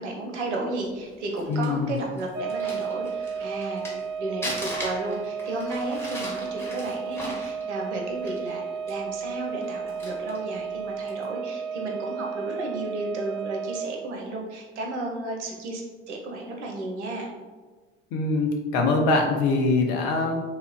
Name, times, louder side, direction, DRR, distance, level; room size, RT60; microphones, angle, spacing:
voice 1, 0.0-3.9 4.2-17.3, right 2 dB, 85° right, 0 dB, 0.5 m, -33 dB
Crumpling crinkling, 1.1-4.1 4.4-8.5 8.9-9.0 9.6-10.4 11.0-11.2, equal, 5° left, 0.8 m, -38 dB
voice 2, 1.5-1.9 18.1-20.4, left 3 dB, 65° left, 2 dB, 0.5 m, -23 dB
sound 1, 2.3-13.9, right 6 dB, 30° right, 0.6 m, -33 dB
2.9 x 2.0 x 2.4 m, 1.3 s
hypercardioid pair, 55°, 34 cm